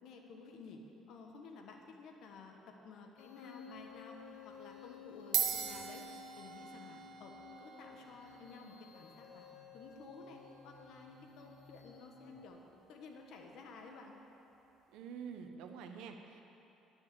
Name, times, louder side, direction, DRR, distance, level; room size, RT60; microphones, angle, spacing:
voice 1, 0.0-4.2 4.4-9.5 9.7-12.6 12.9-14.1, left 4 dB, 60° left, 2 dB, 1.3 m, -53 dB
sound 1, 3.2-12.5, left 7 dB, 85° left, 1.4 m, -55 dB
sound 2, 3.7-4.0 4.8-4.9 5.2-13.9, right 8 dB, 50° right, 1.0 m, -43 dB
voice 2, 14.9-16.4, right 6 dB, 80° right, 5 dB, 1.0 m, -47 dB
10.5 x 9.7 x 6.9 m, 2.9 s
cardioid pair, 145°, 0 cm